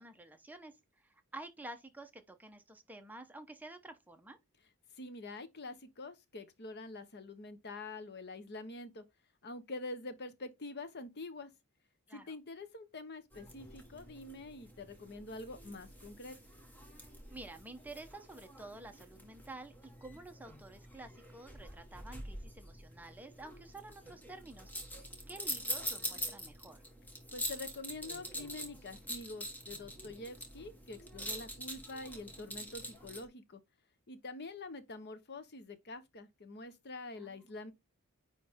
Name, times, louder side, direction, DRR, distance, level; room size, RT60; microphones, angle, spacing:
voice 1, 0.0-4.4 12.1-12.3 17.3-26.8 37.1-37.5, right 2 dB, 10° right, 0.8 m, -50 dB
voice 2, 4.9-9.0 9.4-11.5 12.1-16.4 27.3-33.6 34.1-37.7, left 2 dB, 50° left, 0.9 m, -46 dB
sound 1, 13.3-33.3, equal, 10° left, 1.3 m, -45 dB
9.6 x 3.3 x 3.5 m
head